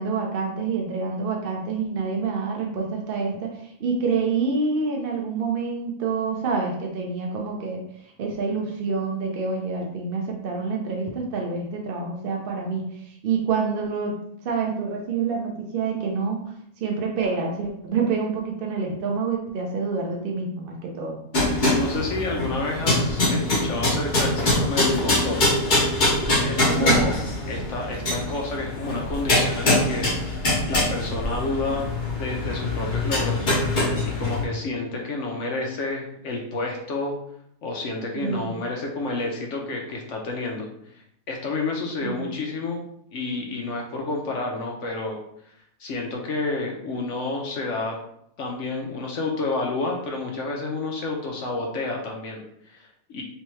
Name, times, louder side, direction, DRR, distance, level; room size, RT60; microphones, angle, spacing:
voice 1, 0.0-7.8 8.2-14.1 14.4-16.4 16.8-21.2 26.7-27.0 38.1-38.6 42.0-42.3, right 4 dB, 60° right, 0 dB, 0.6 m, -27 dB
sound 1, 21.3-34.4, left 1 dB, 40° left, 0.9 m, -23 dB
voice 2, 21.5-25.4 26.4-27.2 27.5-30.1 30.7-37.2 37.6-40.7 40.9-42.8 43.1-45.2 45.8-48.0 48.4-53.2, left 3 dB, 65° left, 0 dB, 0.9 m, -30 dB
3.6 x 3.2 x 3.0 m, 0.72 s
omnidirectional pair, 1.6 m